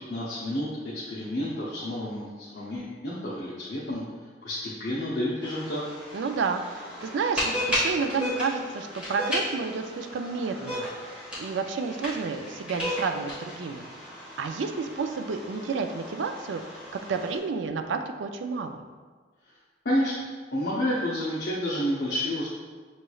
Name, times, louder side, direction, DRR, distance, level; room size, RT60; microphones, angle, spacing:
voice 1, 0.1-4.0 4.4-5.8 19.8-20.2 20.5-22.5, left 1 dB, 60° left, -7 dB, 0.7 m, -30 dB
sound 1, 5.4-17.4, left 1 dB, 5° right, 1.2 m, -34 dB
voice 2, 6.1-11.0 11.4-13.9 14.4-16.6 16.9-18.8, right 5 dB, 80° right, 7 dB, 0.3 m, -30 dB
6.5 x 3.1 x 2.3 m, 1.5 s
head